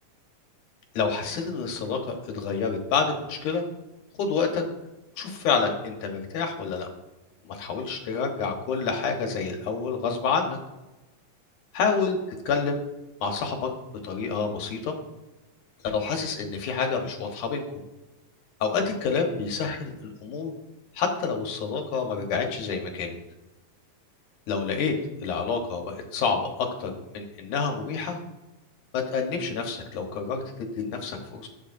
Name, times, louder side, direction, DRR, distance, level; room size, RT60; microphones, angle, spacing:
voice 1, 0.9-3.6 4.2-4.6 5.2-6.9 7.5-10.6 11.7-12.2 12.5-12.8 13.2-13.7 14.0-14.9 15.8-17.6 18.6-19.9 20.2-20.5 20.9-23.1 24.5-24.9 25.2-28.2 28.9-31.5, left 5 dB, 70° left, 3 dB, 2.7 m, -28 dB
20.5 x 7.3 x 2.7 m, 1.1 s
omnidirectional pair, 3.9 m